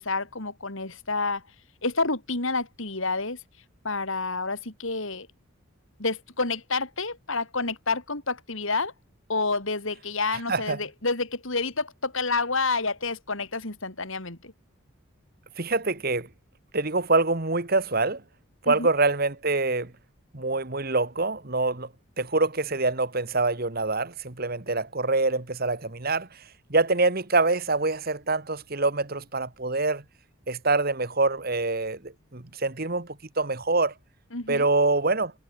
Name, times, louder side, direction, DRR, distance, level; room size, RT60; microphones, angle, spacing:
voice 1, 0.0-1.4 1.8-3.4 3.8-5.3 6.0-8.9 9.3-14.5 18.7-18.9 34.3-34.7, left 3 dB, 65° left, 3.6 m, -29 dB
voice 2, 10.5-10.8 15.6-16.3 16.7-18.2 18.6-19.9 20.3-21.9 22.2-26.4 26.7-30.0 30.5-33.9 34.5-35.3, right 3 dB, 45° right, 1.6 m, -25 dB
head